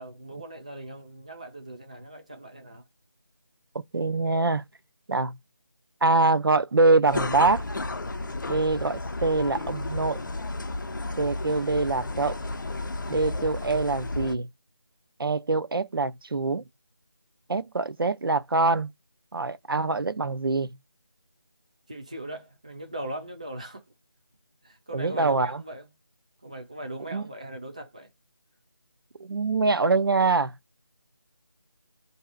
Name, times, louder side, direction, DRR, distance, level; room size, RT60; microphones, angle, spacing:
voice 1, 0.0-2.8 21.9-23.8 24.6-25.9 26.4-28.1, right 1 dB, 15° right, 0.4 m, -39 dB
voice 2, 3.7-4.6 5.1-5.4 6.0-7.7 8.5-10.2 11.2-12.4 13.1-14.5 15.2-16.6 17.5-18.9 19.3-20.7 24.9-25.6 27.1-27.2 29.2-30.5, right 3 dB, 70° right, 0.5 m, -24 dB
sound 1, 7.1-14.4, left 2 dB, 55° left, 0.5 m, -32 dB
2.6 x 2.4 x 4.1 m
figure-of-eight pair, 170°, 12 cm